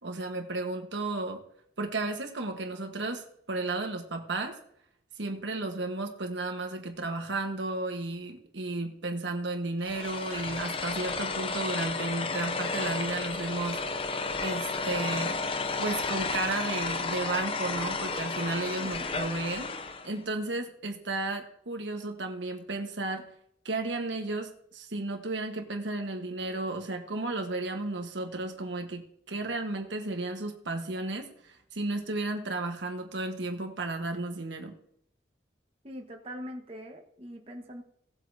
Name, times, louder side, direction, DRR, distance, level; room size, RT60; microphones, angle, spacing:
voice 1, 0.0-1.4 1.8-4.5 5.2-13.8 14.4-15.4 15.8-19.7 20.0-23.2 23.6-34.7, right 2 dB, 80° right, 4 dB, 1.3 m, -33 dB
sound 1, 9.8-20.1, left 4 dB, 30° left, 0.6 m, -32 dB
voice 2, 18.8-19.1 35.8-37.8, equal, 30° right, 1 dB, 1.4 m, -42 dB
18.0 x 7.9 x 2.8 m, 0.70 s
head